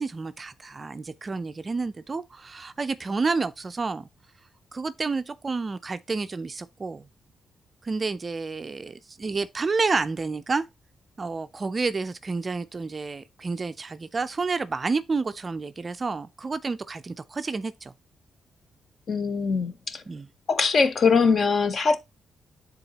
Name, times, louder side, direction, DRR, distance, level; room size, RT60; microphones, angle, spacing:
voice 1, 0.0-4.1 4.7-7.1 7.8-10.7 11.2-17.9 20.1-20.3, right 4 dB, 25° right, 0.4 m, -30 dB
voice 2, 19.1-20.0 20.5-22.0, left 5 dB, 40° left, 0.8 m, -22 dB
9.9 x 4.0 x 2.8 m
wide cardioid pair, 150°, 0 cm